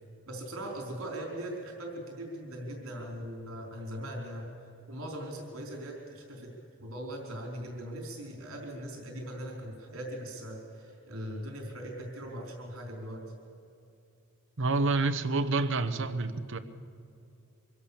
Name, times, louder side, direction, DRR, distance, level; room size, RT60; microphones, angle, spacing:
voice 1, 0.3-4.5 4.9-6.5 6.8-13.3, right 1 dB, 80° right, 1 dB, 4.5 m, -40 dB
voice 2, 14.6-16.6, right 3 dB, 60° right, 11 dB, 1.0 m, -28 dB
25.0 x 16.5 x 7.0 m, 2.7 s
head